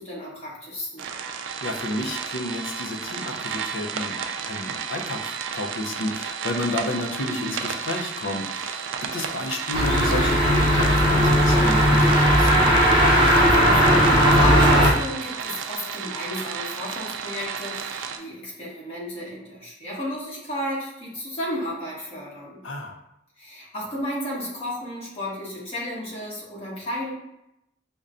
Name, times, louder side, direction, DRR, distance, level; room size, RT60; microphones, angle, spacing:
voice 1, 0.0-1.1 13.2-22.6 23.4-27.1, left 1 dB, 35° left, -7 dB, 1.2 m, -33 dB
sound 1, 1.0-18.2, right 6 dB, 75° right, 0.3 m, -32 dB
voice 2, 1.3-4.2 4.4-12.7 22.6-23.0, left 1 dB, 80° left, 3 dB, 0.5 m, -31 dB
sound 2, 9.7-14.9, equal, 25° right, 0.6 m, -17 dB
5.3 x 2.2 x 2.5 m, 0.83 s
head